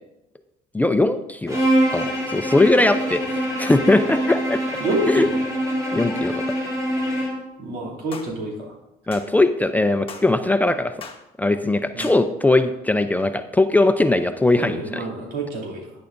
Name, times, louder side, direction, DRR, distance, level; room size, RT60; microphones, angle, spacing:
voice 1, 0.7-1.6 1.9-4.6 5.1-5.3 5.9-6.4 9.1-10.9 11.4-15.0, left 2 dB, 10° left, 8 dB, 0.4 m, -20 dB
Bowed string instrument, 1.5-7.5, equal, 20° right, 2.9 m, -24 dB
voice 2, 4.8-5.4 7.6-8.8 11.9-12.1 14.6-15.9, right 1 dB, 75° right, -1 dB, 2.9 m, -27 dB
sound 1, 8.1-8.3 9.1-9.3 10.1-10.3 11.0-11.2 12.0-12.2, left 5 dB, 30° left, 1.2 m, -38 dB
10.5 x 9.9 x 2.6 m, 0.89 s
cardioid pair, 110°, 17 cm